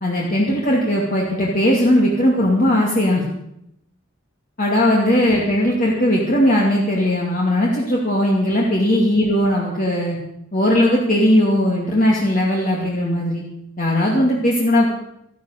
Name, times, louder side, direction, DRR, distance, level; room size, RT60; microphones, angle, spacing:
voice 1, 0.0-3.2 4.6-10.2 10.5-13.4 13.8-14.9, left 1 dB, 45° left, -3 dB, 2.4 m, -18 dB
13.5 x 12.5 x 6.6 m, 0.78 s
head